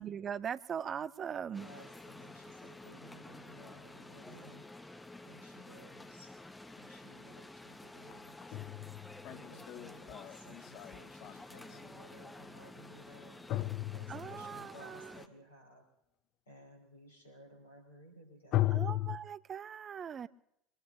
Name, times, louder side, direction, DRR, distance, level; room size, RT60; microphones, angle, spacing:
voice 1, 0.0-1.7 14.1-15.2 18.7-20.3, right 8 dB, 30° right, 17 dB, 0.6 m, -40 dB
voice 2, 1.5-4.7 5.2-6.3 6.7-8.7 9.3-15.8 16.5-18.9, equal, 75° left, 1 dB, 5.0 m, -57 dB
sound 1, 1.5-15.3, left 2 dB, 10° left, 1.3 m, -51 dB
sound 2, 7.1-7.2 8.1-11.8 13.5-14.6 18.5-19.2, left 15 dB, 45° left, 0.6 m, -35 dB
24.0 x 21.5 x 2.8 m, 0.77 s
figure-of-eight pair, 70°, 0 cm